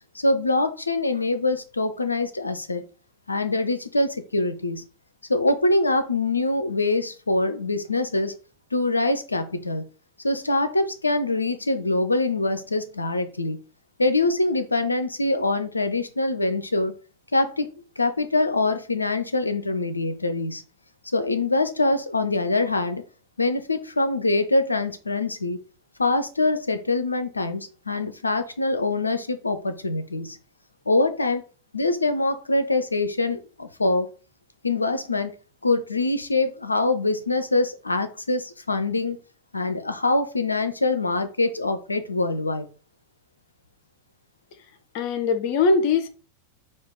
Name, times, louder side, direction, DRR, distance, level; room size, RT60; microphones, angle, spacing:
voice 1, 0.1-2.8 3.3-4.9 5.3-8.3 8.7-9.8 10.2-13.6 14.0-16.9 17.3-20.6 21.1-23.0 23.4-25.6 26.0-30.4 30.9-31.4 31.7-34.1 34.6-35.3 35.6-39.2 39.5-42.7, left 2 dB, 80° left, 0.5 m, -24 dB
voice 2, 44.9-46.1, left 4 dB, 45° left, 0.7 m, -21 dB
4.5 x 2.4 x 3.7 m
figure-of-eight pair, 90°, 0 cm